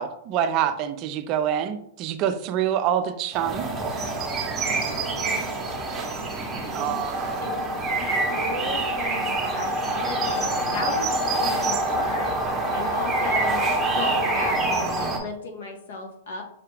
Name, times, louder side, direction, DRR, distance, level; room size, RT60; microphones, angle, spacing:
voice 1, 0.0-3.7 6.7-7.4, right 9 dB, 40° right, 9 dB, 0.4 m, -26 dB
sound 1, 3.3-15.2, right 2 dB, 15° right, 0.8 m, -26 dB
voice 2, 4.9-5.4 6.6-7.0 7.4-12.3 12.7-16.4, left 2 dB, 75° left, 3 dB, 1.1 m, -36 dB
5.6 x 2.3 x 3.3 m, 0.71 s
hypercardioid pair, 140°, 0 cm